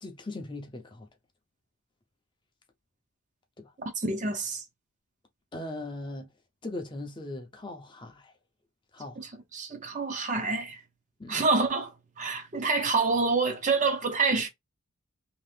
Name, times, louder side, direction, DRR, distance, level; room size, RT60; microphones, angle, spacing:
voice 1, 0.0-1.1 3.6-3.7 5.5-6.3 6.6-8.3 8.9-9.3 11.2-11.5, left 2 dB, 20° left, 0.5 m, -39 dB
voice 2, 3.8-4.6 9.2-10.8 11.3-11.9 12.2-14.5, right 4 dB, 35° right, 0.5 m, -27 dB
2.8 x 2.4 x 3.2 m
head